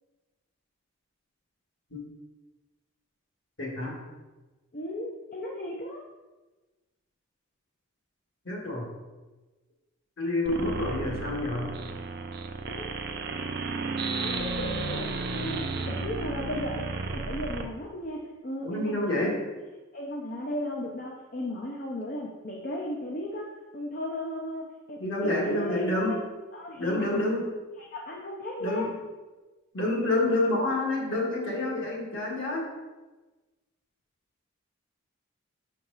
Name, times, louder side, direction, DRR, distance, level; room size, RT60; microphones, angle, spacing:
voice 1, 3.6-4.0 8.5-8.9 10.2-11.7 18.6-19.4 25.0-26.2 26.8-27.5 28.6-28.9 29.7-32.7, left 2 dB, 60° left, -3 dB, 1.7 m, -28 dB
voice 2, 4.7-6.0 12.7-12.9 14.2-19.4 19.9-23.5 23.7-26.2 26.5-27.1 27.8-28.9, left 1 dB, 45° left, -1 dB, 0.6 m, -36 dB
sound 1, 10.5-17.7, right 3 dB, 50° right, 0.5 m, -33 dB
6.3 x 4.6 x 3.9 m, 1.2 s
head